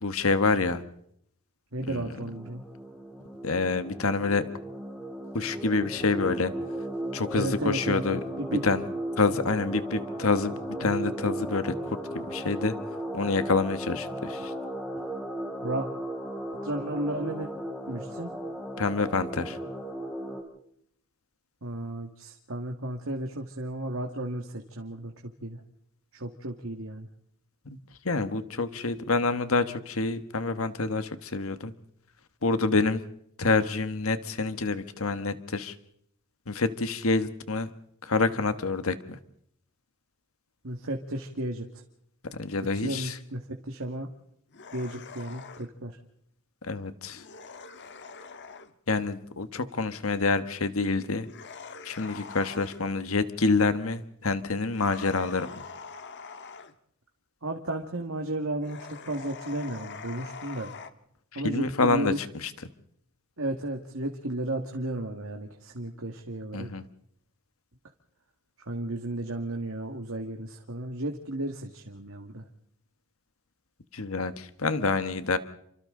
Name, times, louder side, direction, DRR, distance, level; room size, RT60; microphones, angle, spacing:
voice 1, 0.0-0.8 1.9-2.1 3.4-4.5 5.3-6.5 7.1-8.2 8.6-8.8 9.2-10.5 10.8-11.7 12.3-12.7 13.1-14.5 18.8-19.6 28.0-31.7 32.4-33.0 33.4-35.7 36.5-37.7 38.1-39.2 42.3-43.1 46.7-47.2 48.9-51.3 51.8-55.5 61.3-62.1 62.4-62.5 66.5-66.8 73.9-75.4, left 3 dB, 75° left, 11 dB, 1.4 m, -27 dB
voice 2, 1.7-2.6 7.3-8.6 15.6-15.9 16.6-17.5 17.9-18.3 21.6-25.1 25.4-25.6 26.1-27.1 40.6-41.7 42.7-44.1 44.7-46.0 57.4-60.7 61.3-62.2 63.4-66.7 68.7-72.4, right 1 dB, 70° right, 3 dB, 2.0 m, -33 dB
sound 1, 1.9-20.4, right 1 dB, 5° left, 3.8 m, -36 dB
sound 2, 44.5-45.7 47.1-48.7 51.2-52.9 54.7-56.8 58.6-60.9, left 5 dB, 55° left, 1.4 m, -44 dB
30.0 x 25.5 x 3.9 m, 0.71 s
head